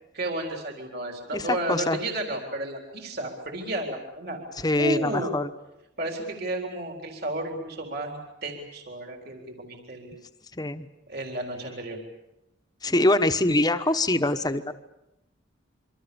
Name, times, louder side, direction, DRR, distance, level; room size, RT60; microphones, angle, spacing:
voice 1, 0.1-4.4 4.8-5.4 6.0-10.1 11.1-12.0, right 1 dB, 55° right, 3 dB, 4.0 m, -32 dB
voice 2, 1.3-2.0 4.6-5.5 10.5-10.9 12.8-14.7, left 2 dB, 20° left, 9 dB, 1.1 m, -24 dB
27.0 x 24.5 x 7.0 m, 0.89 s
head